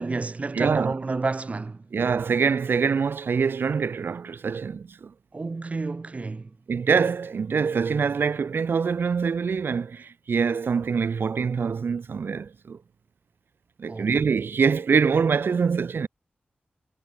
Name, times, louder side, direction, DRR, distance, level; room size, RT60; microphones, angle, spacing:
voice 1, 0.0-1.8 5.3-6.5 13.9-14.2, right 3 dB, 40° right, 5.9 m, -30 dB
voice 2, 0.5-0.9 1.9-5.1 6.7-12.8 13.8-16.1, right 5 dB, 80° right, 6.2 m, -24 dB
wide cardioid pair, 130°, 4 cm